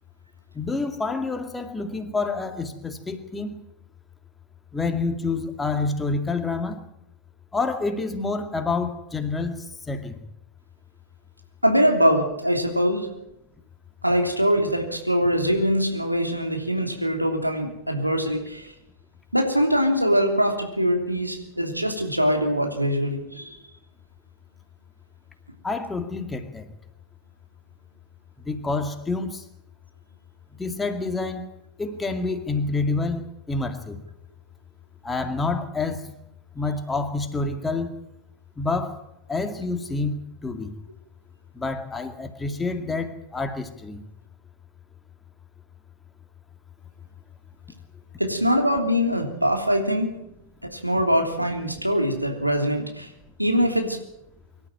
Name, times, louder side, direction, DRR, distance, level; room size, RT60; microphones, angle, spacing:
voice 1, 0.5-3.7 4.7-6.8 7.5-10.2 25.6-26.7 28.5-29.4 30.6-31.5 31.8-34.0 35.0-36.1 36.5-37.9 38.6-39.0 39.3-40.2 40.4-40.8 41.5-44.0, left 3 dB, 10° left, 2.2 m, -28 dB
voice 2, 11.6-13.1 14.0-18.7 19.3-23.6 48.2-50.1 50.7-53.1 53.4-54.0, equal, 90° right, 3.2 m, -23 dB
24.5 x 12.5 x 9.1 m
figure-of-eight pair, 90°, 0 cm